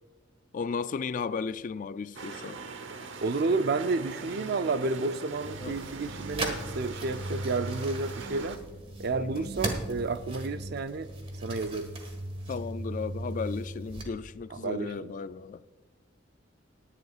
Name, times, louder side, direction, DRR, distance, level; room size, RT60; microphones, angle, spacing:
voice 1, 0.5-2.6 5.6-5.8 9.2-9.5 12.5-15.6, left 5 dB, 45° left, 0.3 m, -35 dB
sound 1, 2.1-8.6, right 4 dB, 85° right, 0.9 m, -42 dB
voice 2, 3.2-8.6 9.0-11.1 11.4-11.9 14.5-15.1, right 3 dB, 60° right, 0.5 m, -31 dB
sound 2, 5.4-14.0, right 1 dB, 30° right, 1.6 m, -37 dB
18.5 x 10.5 x 2.4 m
head